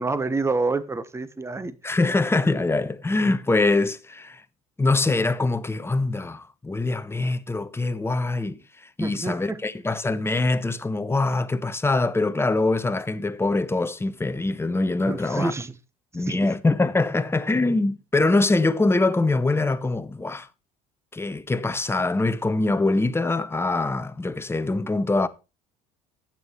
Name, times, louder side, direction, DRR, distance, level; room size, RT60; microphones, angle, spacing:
voice 1, 0.0-2.0 9.0-9.6 15.1-15.7 16.3-16.4, right 3 dB, 15° right, 1.2 m, -28 dB
voice 2, 1.8-4.4 4.8-8.6 9.0-15.5 16.1-20.5 21.1-25.3, left 2 dB, 10° left, 1.1 m, -23 dB
11.0 x 8.7 x 4.5 m
hypercardioid pair, 60°, 19 cm